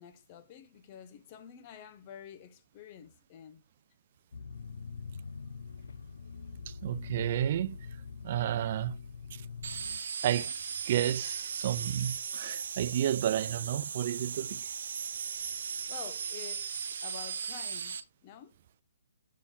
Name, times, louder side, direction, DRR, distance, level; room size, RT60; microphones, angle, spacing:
voice 1, 0.0-3.6 15.9-18.5, left 9 dB, 25° left, 0.7 m, -49 dB
sound 1, 4.3-10.0, left 5 dB, 85° left, 0.6 m, -44 dB
voice 2, 6.7-7.9 8.2-9.0 9.3-9.4 10.2-10.5 10.9-14.7, right 11 dB, 40° right, 0.3 m, -31 dB
sound 2, 9.6-18.0, right 6 dB, 60° right, 1.1 m, -37 dB
7.2 x 4.4 x 4.1 m
hypercardioid pair, 165°, 0 cm